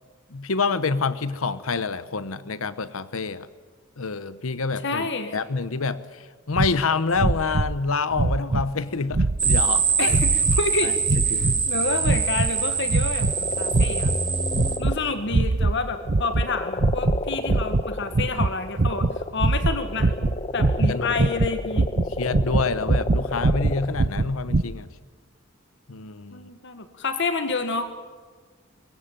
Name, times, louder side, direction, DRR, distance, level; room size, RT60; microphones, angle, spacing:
voice 1, 0.3-3.5 4.0-5.1 5.3-10.2 10.8-10.9 11.3-11.5 20.9-21.2 22.2-24.9 25.9-26.5, left 4 dB, 80° left, 15 dB, 0.9 m, -27 dB
voice 2, 4.8-5.4 10.0-10.9 11.3-13.3 13.6-14.1 14.8-20.1 20.5-21.9 26.3-27.8, left 3 dB, 60° left, 9 dB, 1.6 m, -29 dB
sound 1, 6.5-6.7 7.1-7.8 8.1-8.7 9.1-9.7 10.1-10.6 11.0-11.6 12.0-12.5 12.9-13.3 13.7-14.2 14.5-15.0 15.3-15.8 16.1-16.5 16.7-17.2 17.5-24.6, right 3 dB, 50° right, 0.7 m, -23 dB
sound 2, 9.4-14.8, right 5 dB, 20° right, 2.5 m, -24 dB
sound 3, 13.2-15.5 15.8-23.9, left 2 dB, 30° left, 1.2 m, -32 dB
23.5 x 22.0 x 9.1 m, 1.5 s
head